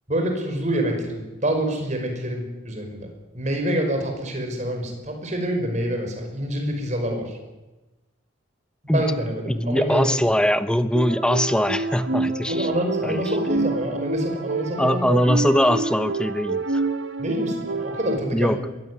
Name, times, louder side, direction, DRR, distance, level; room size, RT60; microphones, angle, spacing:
voice 1, 0.1-3.1 3.3-7.4 8.8-10.2 12.5-15.1 17.2-18.7, right 1 dB, 35° right, 4 dB, 5.6 m, -27 dB
voice 2, 9.5-12.7 13.0-13.2 14.8-16.8 18.3-18.6, equal, 5° left, 11 dB, 0.8 m, -21 dB
sound 1, 10.9-18.2, right 2 dB, 65° right, 1.3 m, -27 dB
22.0 x 16.5 x 9.8 m, 1.1 s
head